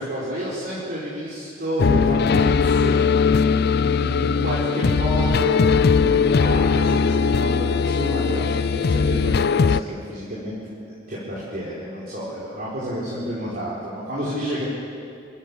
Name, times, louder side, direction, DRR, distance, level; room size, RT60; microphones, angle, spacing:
voice 1, 0.0-3.0 3.7-5.6 5.8-10.5 10.8-14.6, equal, 50° right, -7 dB, 4.5 m, -30 dB
sound 1, 1.8-9.8, left 5 dB, 55° left, 0.4 m, -19 dB
28.5 x 15.0 x 7.2 m, 2.4 s
head